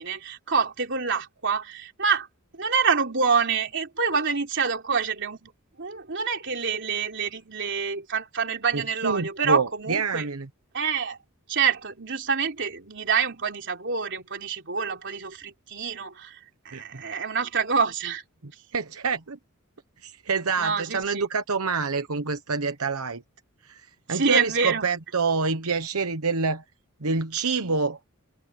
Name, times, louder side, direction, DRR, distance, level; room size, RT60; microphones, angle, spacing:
voice 1, 0.0-2.3 2.5-5.5 5.8-10.3 10.7-11.2 11.5-16.4 16.7-18.2 20.6-21.3 24.1-24.9, right 5 dB, 55° right, 3.4 m, -26 dB
voice 2, 8.7-10.5 16.7-17.0 18.7-19.4 20.0-23.2 23.6-26.6 27.0-28.0, right 4 dB, 85° right, 1.1 m, -27 dB
head